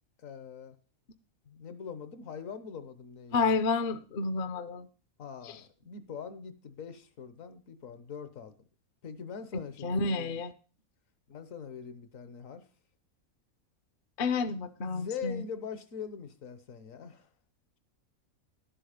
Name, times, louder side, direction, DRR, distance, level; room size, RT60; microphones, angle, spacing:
voice 1, 0.2-0.8 1.4-3.5 5.2-8.7 9.0-10.4 11.3-12.7 14.4-17.3, left 6 dB, 65° left, 12 dB, 1.3 m, -43 dB
voice 2, 3.3-4.9 5.4-5.5 9.5-10.5 14.2-15.4, left 4 dB, 50° left, 11 dB, 0.7 m, -30 dB
11.0 x 7.7 x 5.0 m, 0.37 s
omnidirectional pair, 1.5 m